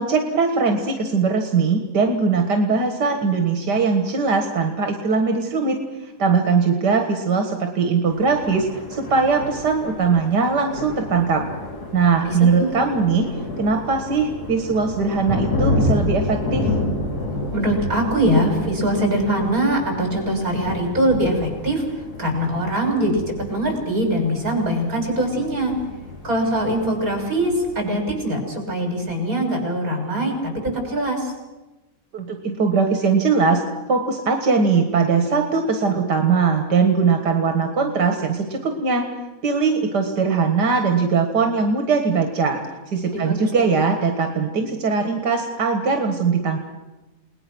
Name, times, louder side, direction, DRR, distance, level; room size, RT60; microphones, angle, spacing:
voice 1, 0.0-5.8 6.0-11.4 11.9-13.3 13.6-16.7 32.1-33.6 33.9-39.1 39.4-42.6 42.9-46.6, right 4 dB, 90° right, 4 dB, 2.4 m, -20 dB
Thunder, 8.1-27.8, left 2 dB, 70° left, 3.8 m, -30 dB
voice 2, 12.2-12.8 17.5-25.7 26.2-31.3 43.0-43.8, right 1 dB, 55° right, 2 dB, 6.7 m, -22 dB
30.0 x 19.5 x 6.3 m, 1.1 s
omnidirectional pair, 1.7 m